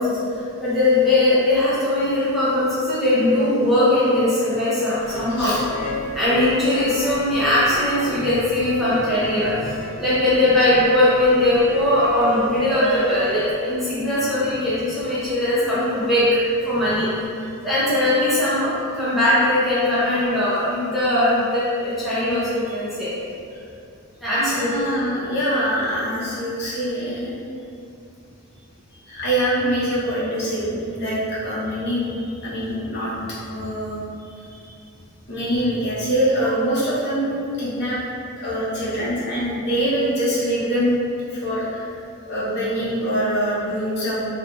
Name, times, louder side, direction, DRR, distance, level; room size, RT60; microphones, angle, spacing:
voice 1, 0.0-5.5 6.1-16.3 16.6-17.2 17.6-23.1 24.2-24.8, left 1 dB, ahead, -12 dB, 0.5 m, -20 dB
sound 1, 5.0-13.5, left 1 dB, 75° left, 0.3 m, -33 dB
voice 2, 24.3-27.3 28.9-34.8 35.3-38.0 38.4-41.0 41.3-41.9 42.2-44.3, equal, 50° left, -9 dB, 0.7 m, -24 dB
2.7 x 2.7 x 2.2 m, 2.5 s
head